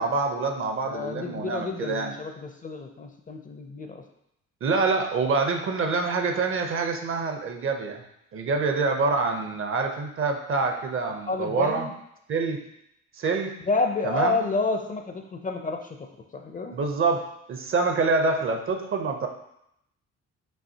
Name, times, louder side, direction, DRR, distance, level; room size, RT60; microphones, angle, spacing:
voice 1, 0.0-2.1 4.6-8.0 8.3-11.9 12.3-12.6 13.2-13.5 14.0-14.4 16.7-17.2 17.5-19.3, right 4 dB, 45° right, 4 dB, 0.6 m, -26 dB
voice 2, 0.8-4.0 11.3-11.9 13.6-16.8, left 3 dB, 25° left, 4 dB, 0.5 m, -29 dB
5.5 x 2.8 x 2.8 m, 0.78 s
cardioid pair, 90°, 30 cm